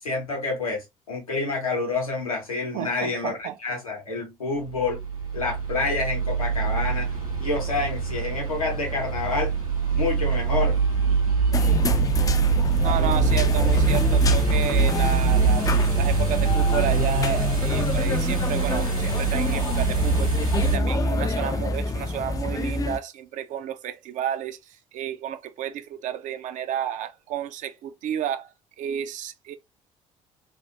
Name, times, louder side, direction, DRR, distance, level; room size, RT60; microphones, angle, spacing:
voice 1, 0.0-5.0 5.3-7.1 7.4-9.5 9.9-10.8, left 3 dB, 80° left, 0.8 m, -28 dB
voice 2, 2.7-3.6 12.8-24.6 24.9-28.5 28.8-29.6, right 10 dB, 45° right, 0.5 m, -31 dB
sound 1, 4.6-20.8, right 5 dB, 85° right, 1.0 m, -24 dB
sound 2, 11.5-23.0, left 3 dB, 20° left, 0.4 m, -26 dB
3.3 x 2.4 x 2.6 m
figure-of-eight pair, 50°, 18 cm